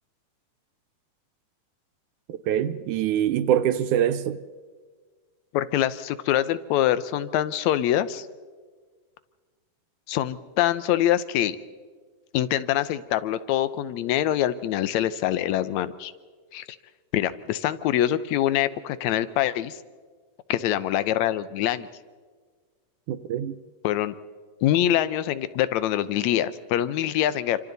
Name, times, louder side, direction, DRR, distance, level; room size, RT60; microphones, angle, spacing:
voice 1, 2.3-4.4 23.1-23.5, right 10 dB, 75° right, 2.1 m, -24 dB
voice 2, 5.5-8.3 10.1-11.6 12.3-16.1 16.5-16.7 17.1-19.8 20.5-21.9 23.8-24.1 24.6-27.6, left 12 dB, 70° left, 1.9 m, -24 dB
28.0 x 25.5 x 4.0 m
omnidirectional pair, 3.7 m